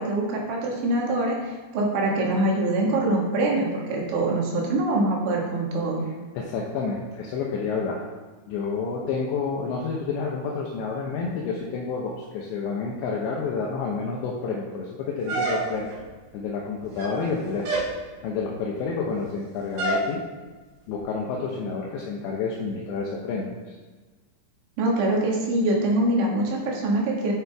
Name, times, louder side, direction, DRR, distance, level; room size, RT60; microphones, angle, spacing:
voice 1, 0.0-6.0 24.8-27.3, right 2 dB, 80° right, -2 dB, 4.1 m, -24 dB
voice 2, 6.3-8.0 8.5-15.9 16.3-17.7 18.0-20.2 20.9-23.8, left 4 dB, 80° left, -2 dB, 3.0 m, -29 dB
sound 1, 15.3-16.0 16.8-17.3 17.6-18.0 19.8-20.1, right 2 dB, 60° right, 3.3 m, -27 dB
9.6 x 8.7 x 3.5 m, 1.3 s
omnidirectional pair, 5.3 m